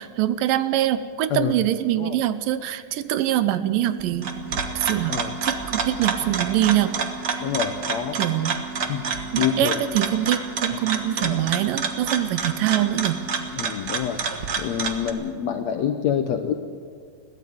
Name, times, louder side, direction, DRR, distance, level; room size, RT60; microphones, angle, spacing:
voice 1, 0.0-4.3 4.8-5.1 5.4-6.9 8.1-8.6 9.3-13.2, right 13 dB, 80° right, 13 dB, 2.2 m, -24 dB
sound 1, 3.5-13.5, right 5 dB, 30° right, 2.9 m, -38 dB
sound 2, 4.0-15.1, right 5 dB, 60° right, 1.0 m, -28 dB
voice 2, 7.4-8.2 8.8-9.0 9.4-9.7 10.7-10.8 11.2-11.4 13.5-14.2 14.6-16.5, left 9 dB, 75° left, 7 dB, 1.6 m, -26 dB
22.0 x 15.5 x 7.9 m, 2.3 s
omnidirectional pair, 4.1 m